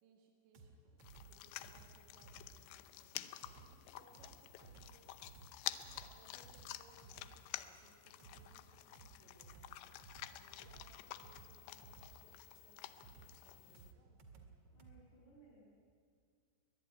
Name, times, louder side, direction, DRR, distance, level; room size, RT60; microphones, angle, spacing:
voice 1, 0.0-3.6 4.0-5.1 5.6-9.9 10.3-14.5, right 4 dB, 75° right, 1 dB, 4.1 m, -69 dB
sound 1, 0.5-15.0, right 4 dB, 45° right, 2.4 m, -59 dB
sound 2, 1.0-13.9, left 15 dB, 85° left, 3.1 m, -50 dB
voice 2, 14.7-15.7, right 3 dB, 65° left, -4 dB, 9.5 m, -63 dB
22.0 x 21.0 x 9.6 m, 2.2 s
omnidirectional pair, 5.2 m